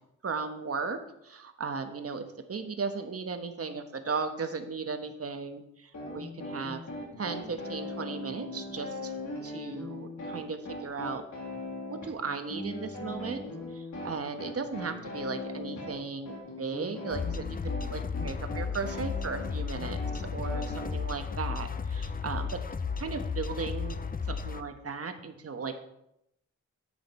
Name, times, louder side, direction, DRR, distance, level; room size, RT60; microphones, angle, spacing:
voice 1, 0.2-6.8 7.2-9.1 9.4-11.2 11.9-13.4 13.7-16.3 16.6-20.0 20.3-22.6 23.0-24.0 24.3-25.8, right 4 dB, 50° right, 7 dB, 1.2 m, -36 dB
sound 1, 5.9-20.9, left 2 dB, 70° left, 2.9 m, -40 dB
sound 2, 17.1-24.6, left 5 dB, 30° left, 0.5 m, -34 dB
10.0 x 8.1 x 4.3 m, 0.81 s
wide cardioid pair, 95°, 31 cm